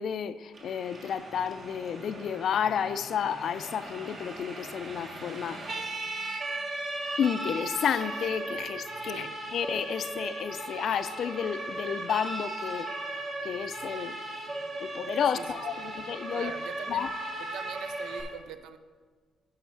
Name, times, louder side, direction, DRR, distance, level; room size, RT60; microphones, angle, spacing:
voice 1, 0.0-5.6 7.2-12.9 13.4-14.2 14.8-16.5 16.9-17.1, left 8 dB, 65° left, 0.3 m, -31 dB
Siren, 0.5-18.2, right 2 dB, 50° right, 1.5 m, -37 dB
voice 2, 15.3-15.9 16.3-17.1 17.4-18.8, right 8 dB, 85° right, 0.5 m, -43 dB
9.2 x 5.1 x 4.6 m
cardioid pair, 90°, 0 cm